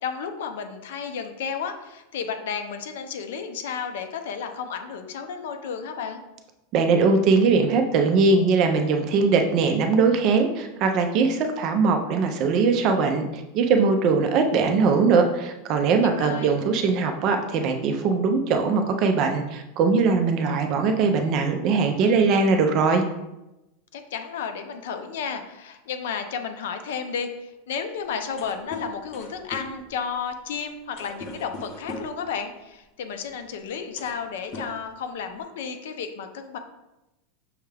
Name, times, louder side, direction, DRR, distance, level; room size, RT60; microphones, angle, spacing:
voice 1, 0.0-6.2 16.0-16.6 23.9-36.6, left 6 dB, 70° left, 7 dB, 0.5 m, -32 dB
voice 2, 6.7-23.0, right 4 dB, 30° right, 5 dB, 0.4 m, -21 dB
sound 1, 28.0-28.1 28.2-32.3 33.3-33.4 33.8-34.3 34.5-35.4, left 1 dB, 20° left, 0.5 m, -40 dB
6.3 x 2.3 x 3.3 m, 0.96 s
supercardioid pair, 175°, 0 cm